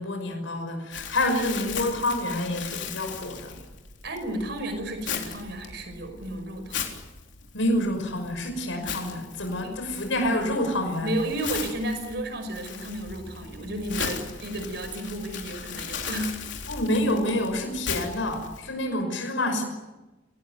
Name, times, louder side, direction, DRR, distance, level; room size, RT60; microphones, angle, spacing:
voice 1, 0.0-3.6 7.5-11.1 16.7-19.6, left 1 dB, 90° left, 5 dB, 5.9 m, -27 dB
Crumpling crinkling, 0.9-18.6, left 6 dB, 65° left, 3.9 m, -37 dB
voice 2, 4.0-6.8 9.6-9.7 11.0-16.6 19.2-19.5, right 1 dB, 60° right, 8 dB, 5.6 m, -33 dB
27.5 x 18.5 x 9.4 m, 1.1 s
head